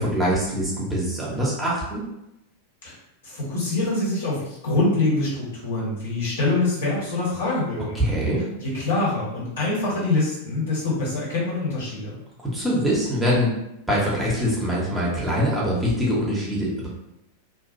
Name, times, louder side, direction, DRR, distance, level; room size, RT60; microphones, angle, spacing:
voice 1, 0.0-2.0 7.9-8.4 12.5-13.5 13.9-16.9, equal, 5° right, -6 dB, 0.8 m, -23 dB
voice 2, 3.2-8.0 8.6-12.2, left 2 dB, 60° left, -5 dB, 1.1 m, -25 dB
2.5 x 2.2 x 2.6 m, 0.86 s
figure-of-eight pair, 90°, 0 cm